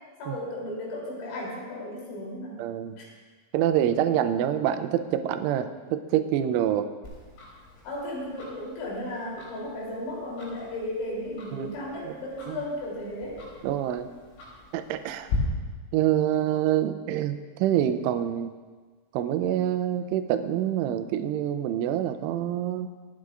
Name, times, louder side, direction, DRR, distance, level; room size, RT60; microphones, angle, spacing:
voice 1, 0.2-2.6 3.0-3.1 7.8-13.4, left 1 dB, 75° left, -5 dB, 5.8 m, -35 dB
voice 2, 2.6-3.0 3.5-6.9 11.5-11.8 12.0-12.2 12.5-12.6 13.6-14.1 14.7-15.3 15.9-18.5 19.1-22.9, right 11 dB, 90° right, 9 dB, 3.1 m, -26 dB
Tick-tock, 7.0-15.4, left 5 dB, 90° left, 5.8 m, -41 dB
25.5 x 9.4 x 2.5 m, 1.4 s
omnidirectional pair, 5.5 m